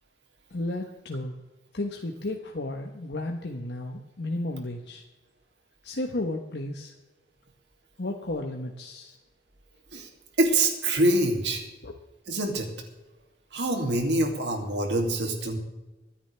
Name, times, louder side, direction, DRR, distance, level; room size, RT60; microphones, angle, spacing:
voice 1, 0.5-1.4 1.7-5.0 5.8-6.9 8.0-9.2 11.8-11.9, left 2 dB, 70° left, 2 dB, 1.1 m, -33 dB
voice 2, 10.4-11.6 12.3-12.7 13.5-15.6, right 1 dB, 80° right, 3 dB, 2.7 m, -25 dB
24.0 x 10.0 x 3.4 m, 1.1 s
head